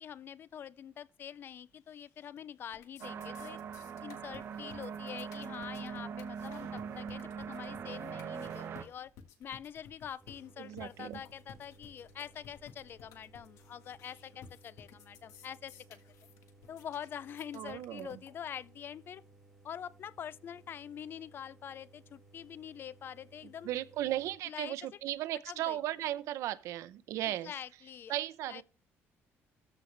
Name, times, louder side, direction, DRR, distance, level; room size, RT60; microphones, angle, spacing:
voice 1, 0.0-3.6 4.0-9.1 9.4-16.0 16.7-19.2 19.6-23.7 24.5-24.9 25.5-25.8 27.2-28.1 28.5-28.6, left 9 dB, 45° left, 0.4 m, -45 dB
sound 1, 1.9-2.4 2.7-18.7, left 7 dB, 90° left, 1.5 m, -56 dB
sound 2, 3.0-8.8, right 7 dB, 55° right, 1.1 m, -42 dB
sound 3, 10.2-24.4, right 2 dB, ahead, 1.6 m, -61 dB
voice 2, 10.6-11.2 17.5-18.2 23.6-27.5 28.1-28.6, right 13 dB, 85° right, 0.6 m, -36 dB
13.5 x 5.2 x 3.3 m
cardioid pair, 140°, 5 cm